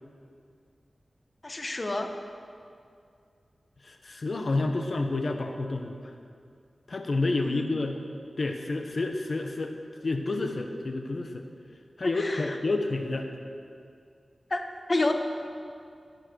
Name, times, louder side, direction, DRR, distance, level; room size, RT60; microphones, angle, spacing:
voice 1, 1.4-2.1 7.4-7.7 12.0-12.5 14.5-15.1, left 2 dB, 40° left, 5 dB, 1.4 m, -30 dB
voice 2, 3.8-6.1 6.9-8.0 8.4-9.7 10.0-11.4 12.0-13.3, left 2 dB, 55° left, 4 dB, 1.1 m, -29 dB
18.5 x 10.5 x 6.4 m, 2.3 s
wide cardioid pair, 75°, 0 cm